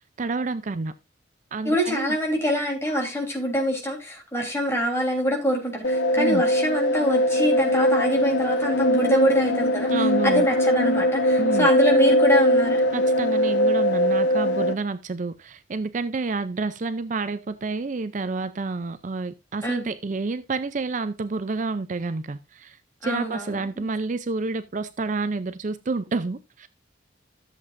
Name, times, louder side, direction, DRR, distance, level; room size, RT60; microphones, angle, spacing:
voice 1, 0.2-0.9 1.5-2.2 6.2-6.4 9.9-10.5 11.4-11.7 12.9-26.7, right 3 dB, 40° right, 0.4 m, -29 dB
voice 2, 1.6-9.9 10.2-12.8 19.6-19.8 23.0-23.9, equal, 15° left, 3.5 m, -25 dB
sound 1, 5.8-14.7, equal, 65° left, 1.0 m, -21 dB
13.5 x 7.6 x 2.5 m
head